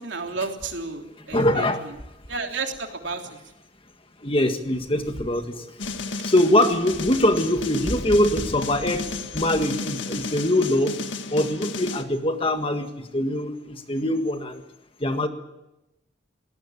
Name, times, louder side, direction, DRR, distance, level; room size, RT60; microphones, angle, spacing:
voice 1, 0.0-1.9 2.3-3.4, right 4 dB, 75° right, 3 dB, 3.3 m, -32 dB
voice 2, 1.3-1.8 4.2-5.7 6.2-9.0 9.3-10.9 11.3-14.6 15.0-15.3, left 1 dB, 30° left, 6 dB, 1.8 m, -23 dB
sound 1, 5.8-12.0, left 3 dB, 85° left, 1.8 m, -33 dB
22.5 x 18.5 x 8.5 m, 0.93 s
head